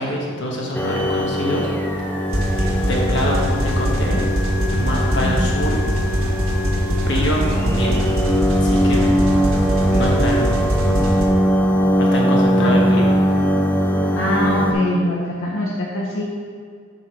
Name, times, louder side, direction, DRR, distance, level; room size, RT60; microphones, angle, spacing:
voice 1, 0.0-1.7 2.6-4.2 4.7-5.8 7.0-8.1 8.4-9.2 9.9-10.6 12.0-13.2, equal, 55° left, -2 dB, 1.2 m, -25 dB
sound 1, 0.7-14.7, equal, 10° left, 0.5 m, -20 dB
sound 2, 2.3-11.3, equal, 85° right, 1.4 m, -21 dB
voice 2, 14.2-16.2, left 1 dB, 75° left, -5 dB, 1.0 m, -23 dB
6.2 x 5.2 x 4.5 m, 2.1 s
head